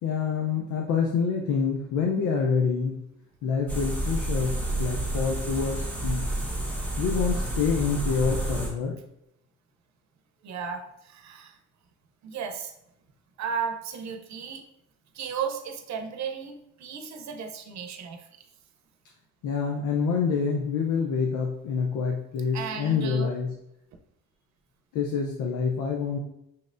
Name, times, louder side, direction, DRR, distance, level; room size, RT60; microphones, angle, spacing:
voice 1, 0.0-3.0 3.4-6.4 7.0-8.9 19.4-23.5 24.9-26.2, left 5 dB, 85° left, 1 dB, 0.6 m, -27 dB
sound 1, 3.7-8.7, right 1 dB, 5° left, 1.4 m, -29 dB
voice 2, 10.4-11.6 12.2-12.7 13.4-14.6 15.1-18.3 22.5-23.3, right 6 dB, 65° right, 5 dB, 0.7 m, -34 dB
5.6 x 3.2 x 2.5 m, 0.80 s
cardioid pair, 90°, 30 cm